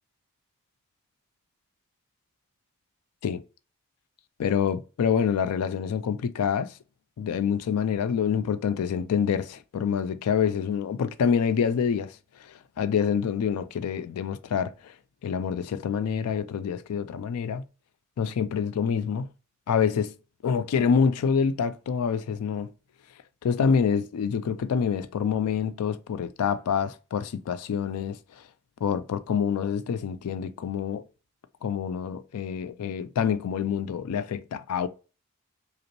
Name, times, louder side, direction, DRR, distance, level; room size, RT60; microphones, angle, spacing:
voice 1, 4.4-6.7 7.2-12.1 12.8-14.9 15.2-17.6 18.2-19.3 19.7-20.1 20.4-22.7 23.4-28.2 28.8-31.0 31.6-34.9, left 7 dB, 85° left, 0.3 m, -26 dB
5.0 x 2.0 x 2.9 m
head